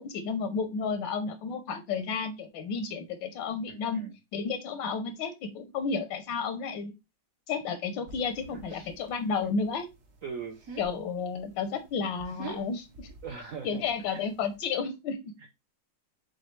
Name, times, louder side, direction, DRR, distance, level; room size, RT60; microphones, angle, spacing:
voice 1, 0.0-4.0 4.3-6.9 7.5-9.9 10.8-13.1 13.6-15.3, left 5 dB, 90° left, 8 dB, 1.4 m, -32 dB
voice 2, 3.7-4.2 8.5-8.9 10.2-10.6 13.1-14.2 15.4-15.6, right 6 dB, 70° right, 3 dB, 0.8 m, -42 dB
sound 1, 8.1-14.6, right 4 dB, 55° right, 1.1 m, -48 dB
6.3 x 2.4 x 3.0 m, 0.23 s
omnidirectional pair, 2.0 m